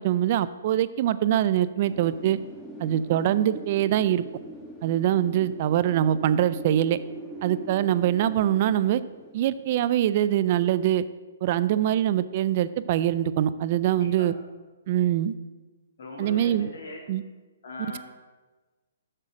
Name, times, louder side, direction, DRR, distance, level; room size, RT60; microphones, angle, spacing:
voice 1, 0.0-2.4 2.8-4.2 4.8-7.0 7.4-9.0 9.3-11.0 11.4-14.3 14.9-15.3 16.2-16.7 17.1-17.2, right 11 dB, 45° right, 15 dB, 0.4 m, -23 dB
Wind, 1.9-10.6, right 1 dB, 5° left, 1.2 m, -42 dB
voice 2, 13.9-14.3 16.0-17.0 17.6-18.0, left 2 dB, 65° left, 0 dB, 2.8 m, -39 dB
7.2 x 6.6 x 6.2 m, 1.2 s
hypercardioid pair, 140°, 0 cm